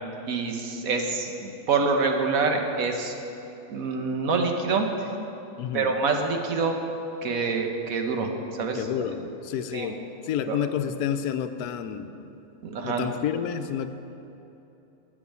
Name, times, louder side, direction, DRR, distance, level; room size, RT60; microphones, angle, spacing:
voice 1, 0.3-3.1 3.7-4.9 5.7-6.7 7.2-8.3 8.6-9.3 9.7-10.0 10.5-10.6 12.6-13.1, right 4 dB, 70° right, 4 dB, 1.4 m, -26 dB
voice 2, 5.6-6.0 8.7-10.0 10.2-12.1 12.8-13.9, left 9 dB, 85° left, 10 dB, 1.1 m, -29 dB
9.7 x 6.3 x 8.1 m, 2.9 s
omnidirectional pair, 1.6 m